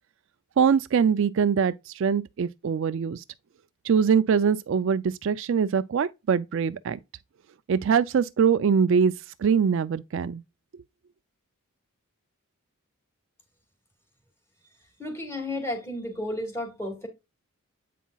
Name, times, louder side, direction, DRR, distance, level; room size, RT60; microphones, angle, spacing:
voice 1, 0.6-3.2 3.8-7.0 7.7-9.1 9.4-10.4, right 6 dB, 60° right, 0.3 m, -23 dB
voice 2, 15.0-17.1, left 1 dB, 10° left, 2.3 m, -32 dB
8.3 x 5.5 x 2.3 m
head